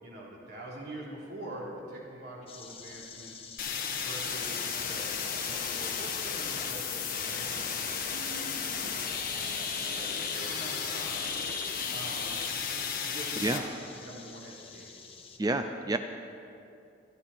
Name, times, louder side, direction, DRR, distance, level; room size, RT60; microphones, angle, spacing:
voice 1, 0.0-3.5 4.0-9.0 9.3-9.6 9.9-11.3 11.9-12.4 13.0-14.9, right 1 dB, 60° right, -4 dB, 3.5 m, -44 dB
sound 1, 2.5-15.4, left 6 dB, 30° left, 1.1 m, -50 dB
sound 2, 3.6-13.6, left 6 dB, 45° left, 1.4 m, -34 dB
voice 2, 15.4-16.0, right 2 dB, 20° right, 7 dB, 0.4 m, -29 dB
27.0 x 9.5 x 4.3 m, 2.6 s
head